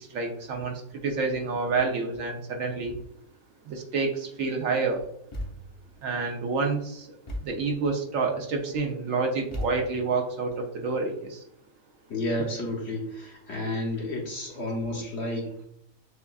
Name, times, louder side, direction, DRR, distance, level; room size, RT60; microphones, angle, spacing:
voice 1, 0.1-2.9 3.7-5.0 6.0-7.1 7.4-11.4, right 4 dB, 65° right, 2 dB, 1.0 m, -28 dB
Thump thud, 5.3-5.9 7.3-7.7 9.5-10.2, equal, 30° left, 0.6 m, -36 dB
voice 2, 12.1-15.7, left 1 dB, 50° left, -1 dB, 1.1 m, -31 dB
6.8 x 2.4 x 2.3 m, 0.72 s
omnidirectional pair, 1.6 m